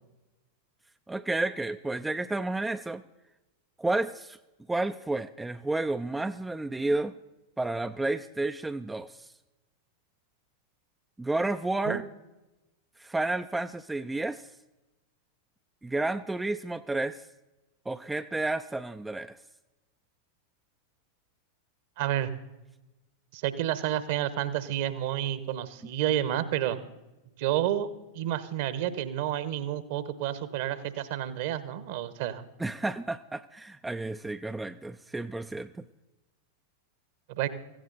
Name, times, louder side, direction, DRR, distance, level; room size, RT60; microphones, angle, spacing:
voice 1, 1.1-3.0 3.8-4.4 4.7-7.1 7.6-9.3 11.2-12.0 13.0-14.4 15.8-17.2 17.9-19.4 32.6-35.8, right 2 dB, 5° right, 9 dB, 0.4 m, -31 dB
voice 2, 22.0-22.3 23.3-26.8 27.4-27.9 28.1-32.4 37.3-37.5, right 12 dB, 50° right, 14 dB, 1.1 m, -30 dB
17.0 x 15.5 x 4.1 m, 1.0 s
figure-of-eight pair, 90°, 0 cm